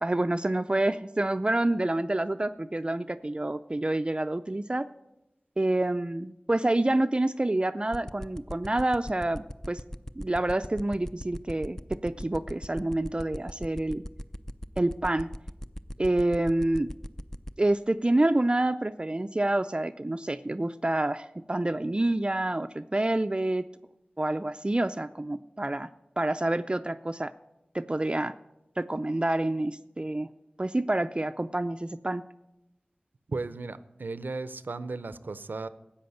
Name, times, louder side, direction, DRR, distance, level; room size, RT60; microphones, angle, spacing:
voice 1, 0.0-4.9 5.6-9.8 10.2-14.0 14.8-15.3 16.0-16.9 17.6-23.6 24.2-25.9 26.2-27.3 27.7-28.3 28.8-30.3 30.6-32.2, right 1 dB, 30° right, 11 dB, 0.5 m, -27 dB
sound 1, 7.9-17.5, equal, 15° left, 0.6 m, -37 dB
voice 2, 33.3-35.7, right 3 dB, 90° right, 14 dB, 0.6 m, -35 dB
13.0 x 8.8 x 7.9 m, 0.90 s
wide cardioid pair, 40°, 3 cm